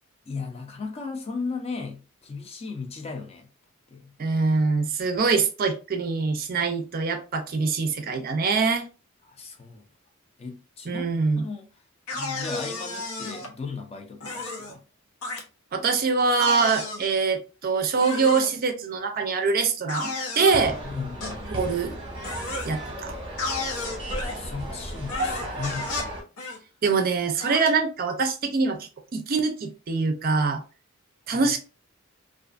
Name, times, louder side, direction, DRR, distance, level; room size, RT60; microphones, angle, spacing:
voice 1, 0.3-3.5 3.9-4.1 9.2-9.8 10.4-11.1 11.4-11.7 12.1-14.8 20.8-21.5 22.7-22.8 23.4-26.1 31.3-31.5, left 4 dB, 30° left, 0.4 m, -36 dB
voice 2, 4.2-8.9 10.9-11.5 15.7-20.8 21.5-21.9 22.6-23.1 26.8-30.6 31.3-31.6, right 4 dB, 45° right, 0.4 m, -24 dB
sound 1, 12.1-13.5 14.2-14.8 15.2-15.4 16.4-17.1 18.0-18.5 19.9-20.6 21.2-21.4 22.2-22.7 23.4-24.4 25.1-26.1 26.4-26.6 27.4-27.7, left 3 dB, 80° left, 0.7 m, -32 dB
sound 2, 20.5-26.2, right 1 dB, 25° right, 0.8 m, -34 dB
2.4 x 2.4 x 2.3 m
head